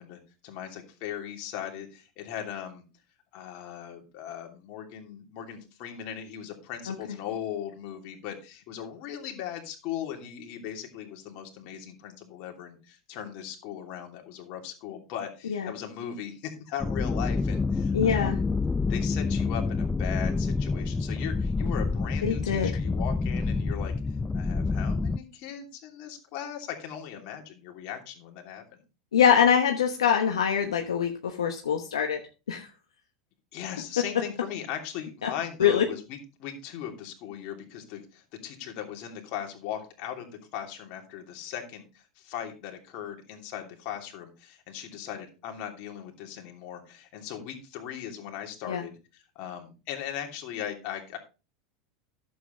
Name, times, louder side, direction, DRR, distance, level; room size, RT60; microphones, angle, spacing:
voice 1, 0.0-2.8 3.3-18.4 18.9-23.9 24.3-28.8 33.5-51.2, left 9 dB, 55° left, 3 dB, 2.9 m, -38 dB
sound 1, 16.8-25.2, left 4 dB, 15° left, 0.4 m, -28 dB
voice 2, 17.9-18.4 22.2-22.7 29.1-32.2 32.5-32.7 35.2-35.3 35.6-35.9 48.7-48.8, left 8 dB, 85° left, 3 dB, 1.2 m, -24 dB
11.0 x 7.7 x 3.9 m, 0.31 s
hypercardioid pair, 90°, 3 cm